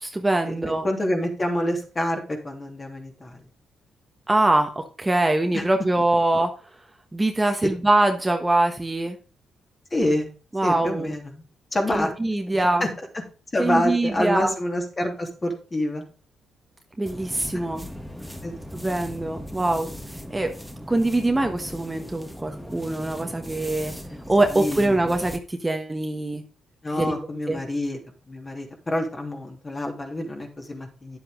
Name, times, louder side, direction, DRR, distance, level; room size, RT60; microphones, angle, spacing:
voice 1, 0.0-0.9 4.3-6.5 7.1-9.2 10.5-11.2 11.9-12.8 13.6-14.5 17.0-17.9 18.7-19.9 20.3-20.5 20.9-23.9 24.3-26.4 26.9-27.2 27.5-27.6, right 2 dB, 15° right, 5 dB, 1.2 m, -23 dB
voice 2, 0.8-3.4 5.5-5.6 9.9-10.3 10.6-11.4 11.7-12.1 12.5-12.9 13.5-16.0 18.4-18.5 24.5-25.0 26.8-28.0 28.3-31.2, left 1 dB, 30° left, 3 dB, 3.0 m, -27 dB
sound 1, 17.1-25.4, equal, ahead, 1.5 m, -38 dB
10.0 x 7.8 x 3.7 m, 0.35 s
cardioid pair, 70°, 0 cm